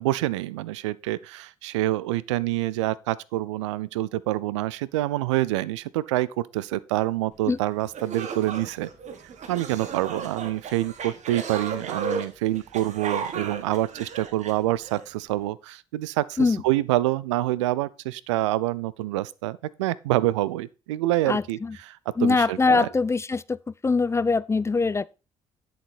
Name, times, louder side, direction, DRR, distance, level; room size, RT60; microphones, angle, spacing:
voice 1, 0.0-8.9 9.5-22.9, right 16 dB, 75° right, 0.4 m, -27 dB
sound 1, 7.5-7.6 7.9-15.0, right 5 dB, 50° right, 1.6 m, -34 dB
voice 2, 21.3-21.7 22.2-23.6 23.8-25.1, left 4 dB, 20° left, 0.4 m, -22 dB
10.5 x 6.5 x 4.2 m
figure-of-eight pair, 45°, 15 cm